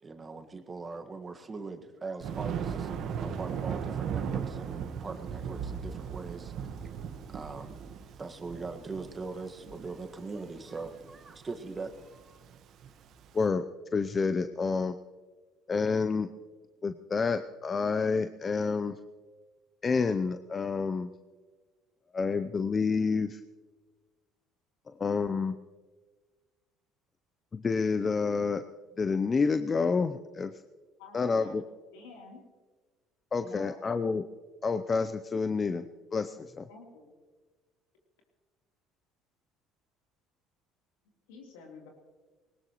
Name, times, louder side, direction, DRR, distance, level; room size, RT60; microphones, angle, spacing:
voice 1, 0.0-6.5 7.3-7.7 8.2-12.4, right 4 dB, 30° right, 6 dB, 1.7 m, -41 dB
Thunder, 2.2-13.3, right 7 dB, 60° right, 1.3 m, -37 dB
voice 2, 13.3-13.7 13.9-15.0 15.7-16.3 16.8-18.9 19.8-21.1 22.1-23.4 24.9-25.6 27.5-28.6 29.0-30.5 31.1-31.6 33.3-34.2 34.6-35.8 36.1-36.7, left 4 dB, 30° left, 9 dB, 0.6 m, -28 dB
voice 3, 31.0-31.5 31.9-32.4 33.4-33.8 36.7-37.1 41.3-41.9, left 3 dB, 85° left, 0 dB, 3.4 m, -49 dB
20.0 x 19.0 x 3.1 m, 1.4 s
supercardioid pair, 75°, 0 cm